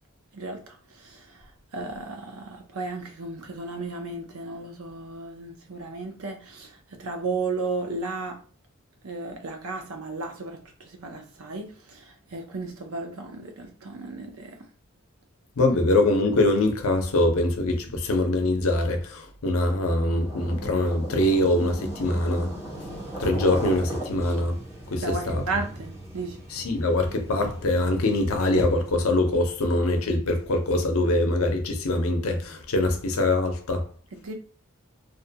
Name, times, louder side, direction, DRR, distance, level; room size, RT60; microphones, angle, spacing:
voice 1, 0.3-1.5 1.7-8.5 9.0-14.6 25.0-26.4 34.1-34.3, right 3 dB, 80° right, 0.6 m, -34 dB
voice 2, 15.6-22.5 23.2-24.6 24.9-25.4 26.5-33.9, left 2 dB, 75° left, 0.6 m, -23 dB
sound 1, 19.9-29.1, right 1 dB, 15° right, 0.7 m, -37 dB
2.4 x 2.2 x 2.7 m
head